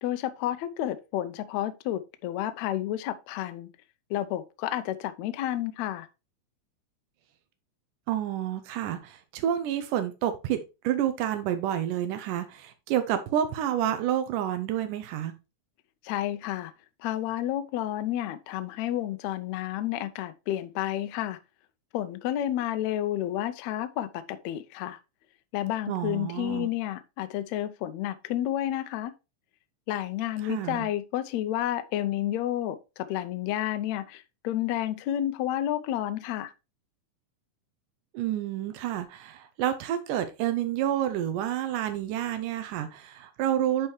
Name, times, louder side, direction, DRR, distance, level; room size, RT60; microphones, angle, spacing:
voice 1, 0.0-3.7 4.1-6.1 16.0-16.7 17.0-21.4 21.9-25.0 25.5-29.1 29.9-36.5, left 12 dB, 80° left, 1.6 m, -30 dB
voice 2, 8.1-15.3 25.9-26.7 30.4-30.9 38.1-43.9, right 11 dB, 80° right, 2.2 m, -29 dB
10.0 x 4.5 x 3.1 m
omnidirectional pair, 3.7 m